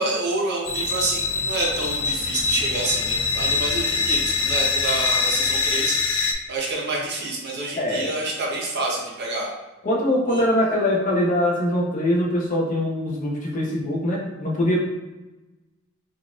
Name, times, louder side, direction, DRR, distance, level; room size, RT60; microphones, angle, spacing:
voice 1, 0.0-6.0 6.5-9.5 10.3-10.4, right 2 dB, 50° right, -2 dB, 0.8 m, -27 dB
sound 1, 0.6-6.3, left 4 dB, 60° left, 0.4 m, -24 dB
voice 2, 7.8-8.1 9.8-14.8, left 1 dB, 40° left, -2 dB, 0.7 m, -23 dB
3.8 x 2.5 x 2.4 m, 1.1 s
head